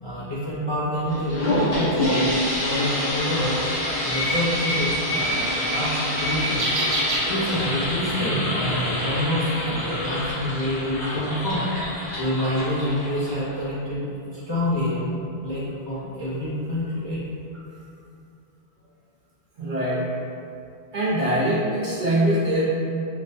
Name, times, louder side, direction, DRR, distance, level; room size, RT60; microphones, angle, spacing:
voice 1, 0.0-3.6 4.0-6.8 7.3-11.7 12.2-14.0 14.3-17.2, left 1 dB, 35° left, -10 dB, 0.5 m, -27 dB
sound 1, 1.1-13.6, left 1 dB, 60° left, 1.5 m, -27 dB
Bird, 1.6-7.9, equal, 75° right, 1.0 m, -29 dB
voice 2, 19.6-20.1 20.9-22.7, right 1 dB, 50° right, -7 dB, 0.7 m, -23 dB
5.1 x 2.1 x 2.6 m, 2.5 s
omnidirectional pair, 1.1 m